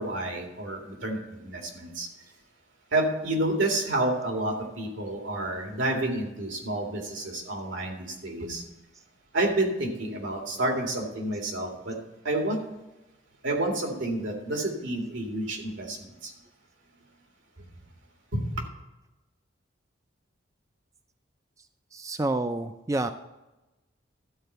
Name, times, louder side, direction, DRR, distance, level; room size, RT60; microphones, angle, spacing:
voice 1, 0.0-2.1 2.9-8.6 9.3-12.0 12.2-12.6 13.4-16.3 18.3-18.7, right 1 dB, 85° right, 2 dB, 2.3 m, -29 dB
voice 2, 21.9-23.1, right 2 dB, 15° right, 9 dB, 0.3 m, -28 dB
13.0 x 4.4 x 7.9 m, 1.0 s
head